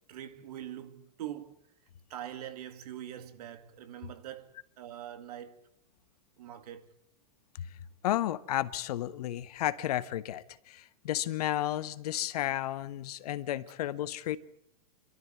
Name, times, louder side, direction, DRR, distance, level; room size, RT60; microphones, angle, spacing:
voice 1, 0.1-1.6 2.1-4.5 4.8-5.6 6.4-6.9, right 11 dB, 70° right, 2.3 m, -43 dB
voice 2, 8.0-14.4, left 13 dB, 70° left, 1.3 m, -32 dB
27.5 x 13.0 x 9.6 m
hypercardioid pair, 125°, 20 cm